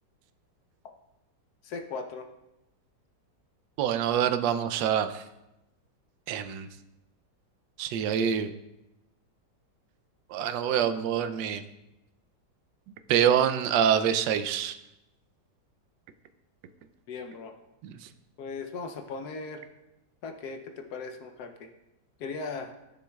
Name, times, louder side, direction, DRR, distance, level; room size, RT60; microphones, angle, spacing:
voice 1, 1.6-2.3 17.1-17.6 18.4-19.6 20.2-21.7 22.2-22.7, left 4 dB, 70° left, 5 dB, 1.1 m, -38 dB
voice 2, 3.8-5.2 6.3-6.7 7.8-8.5 10.3-11.6 13.1-14.7 17.8-18.0, right 9 dB, 90° right, 10 dB, 1.3 m, -25 dB
13.0 x 6.2 x 2.3 m, 0.93 s
omnidirectional pair, 1.9 m